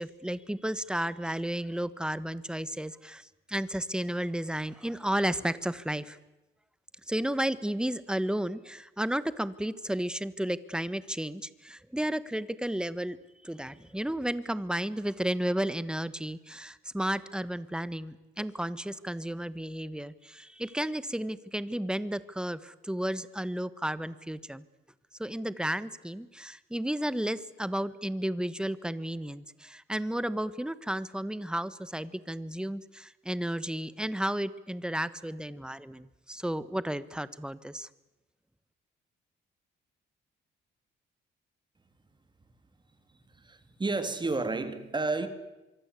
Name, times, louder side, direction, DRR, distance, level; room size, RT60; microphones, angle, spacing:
voice 1, 0.0-6.2 7.1-13.2 13.4-24.6 25.2-37.9, right 1 dB, 5° right, 16 dB, 1.4 m, -33 dB
voice 2, 43.1-45.3, right 3 dB, 25° right, 9 dB, 3.3 m, -31 dB
25.0 x 24.5 x 8.4 m, 1.0 s
cardioid pair, 90°, 20 cm